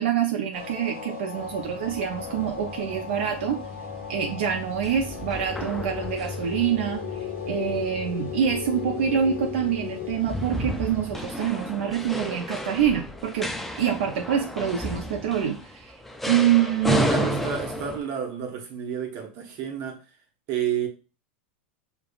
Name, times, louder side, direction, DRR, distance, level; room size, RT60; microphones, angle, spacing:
voice 1, 0.0-3.6 4.1-16.0 16.3-17.3, right 9 dB, 75° right, 0.6 m, -26 dB
sound 1, 0.5-10.2, left 9 dB, 70° left, 0.7 m, -36 dB
sound 2, 0.5-12.2, right 5 dB, 20° right, 1.2 m, -48 dB
sound 3, 1.4-18.0, equal, 5° left, 0.3 m, -33 dB
voice 2, 17.1-20.0 20.5-20.9, right 9 dB, 45° right, 1.0 m, -30 dB
5.1 x 2.3 x 2.3 m
supercardioid pair, 140°, 6 cm